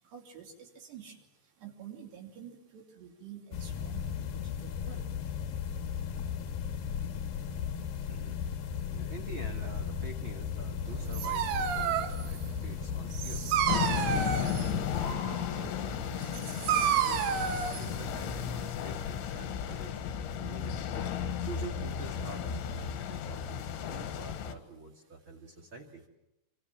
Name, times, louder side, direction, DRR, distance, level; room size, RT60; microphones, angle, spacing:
voice 1, 0.1-1.2 1.6-4.3 4.6-5.1, right 8 dB, 65° right, 1 dB, 5.0 m, -48 dB
sound 1, 3.5-15.2, left 8 dB, 65° left, 2.6 m, -36 dB
voice 2, 8.8-13.4 13.9-16.1 16.5-20.9 21.4-26.0, right 3 dB, 40° right, 2 dB, 1.9 m, -46 dB
Dog, 10.8-18.7, right 8 dB, 85° right, 4.0 m, -31 dB
sound 2, 13.7-24.5, left 9 dB, 90° left, 4.0 m, -34 dB
26.5 x 25.5 x 7.6 m, 0.87 s
omnidirectional pair, 5.4 m